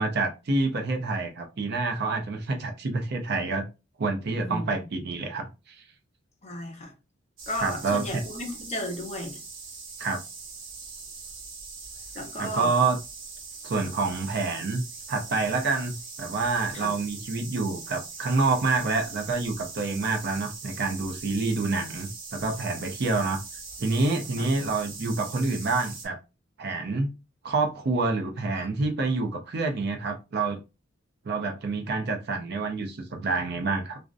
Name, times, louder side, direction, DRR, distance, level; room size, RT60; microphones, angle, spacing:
voice 1, 0.0-3.6 4.0-5.7 7.6-8.2 10.0-10.2 12.4-13.0 13.6-14.8 15.1-23.4 23.8-26.2 26.6-27.1 27.4-30.6 31.3-34.0, right 3 dB, 55° right, 0.5 m, -27 dB
voice 2, 4.3-4.7 6.4-6.9 7.5-9.4 12.2-12.7 16.7-16.9 24.4-24.5 28.5-28.7, left 1 dB, 35° left, 0.6 m, -34 dB
sound 1, 7.4-26.1, right 4 dB, 85° right, 1.0 m, -41 dB
2.5 x 2.0 x 2.4 m
head